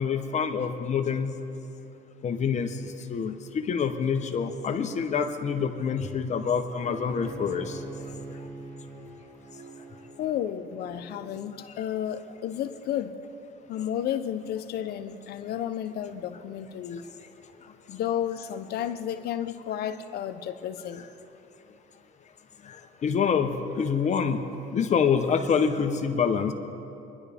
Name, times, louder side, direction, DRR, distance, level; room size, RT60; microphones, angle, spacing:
voice 1, 0.0-1.3 2.2-2.8 3.1-7.8 23.0-24.4 24.7-26.5, left 6 dB, 45° left, 6 dB, 0.9 m, -26 dB
Bowed string instrument, 6.8-11.9, right 3 dB, 60° right, 3.0 m, -44 dB
voice 2, 10.2-13.1 13.7-17.0 17.9-21.0, left 10 dB, 70° left, 9 dB, 0.8 m, -32 dB
24.5 x 11.0 x 3.5 m, 2.9 s
cardioid pair, 110°, 17 cm